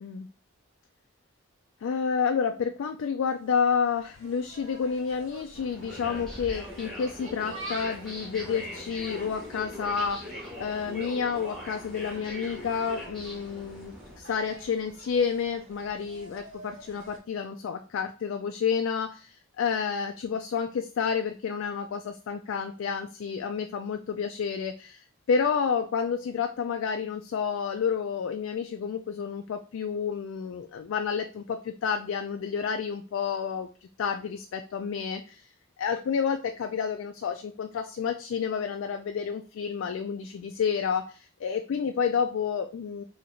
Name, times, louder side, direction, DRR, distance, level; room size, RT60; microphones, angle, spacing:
voice 1, 1.8-33.7 34.0-35.5 35.8-43.0, left 6 dB, 75° left, 6 dB, 0.3 m, -30 dB
Insect, 3.4-17.2, right 1 dB, 75° right, 1.7 m, -48 dB
sound 1, 5.5-14.2, left 1 dB, ahead, 0.9 m, -41 dB
2.8 x 2.6 x 4.3 m, 0.36 s
head